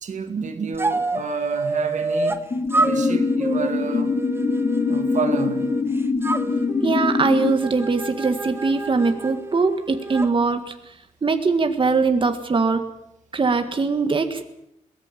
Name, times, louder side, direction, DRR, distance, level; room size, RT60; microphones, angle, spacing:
voice 1, 0.0-2.5 2.8-4.1 4.9-5.7, right 5 dB, 70° right, 2.2 m, -30 dB
sound 1, 0.8-2.4 2.7-5.8 6.2-10.3, right 2 dB, 20° right, 1.3 m, -28 dB
sound 2, 2.5-7.5, left 4 dB, 35° left, 1.3 m, -23 dB
voice 2, 6.8-10.7 11.2-12.8 13.3-14.5, right 4 dB, 40° right, 1.8 m, -21 dB
22.5 x 18.0 x 7.5 m
cardioid pair, 95°, 13 cm